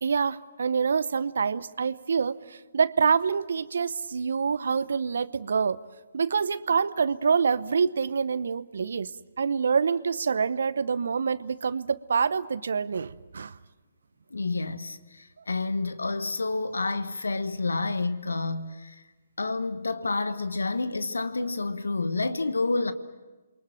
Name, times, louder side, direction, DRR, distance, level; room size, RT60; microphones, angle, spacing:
voice 1, 0.0-5.8 6.1-9.1 9.4-13.5, right 5 dB, 65° right, 0.8 m, -26 dB
voice 2, 14.3-19.0 19.4-22.9, left 3 dB, 80° left, 1.3 m, -29 dB
28.5 x 23.5 x 7.5 m
figure-of-eight pair, 135°, 0 cm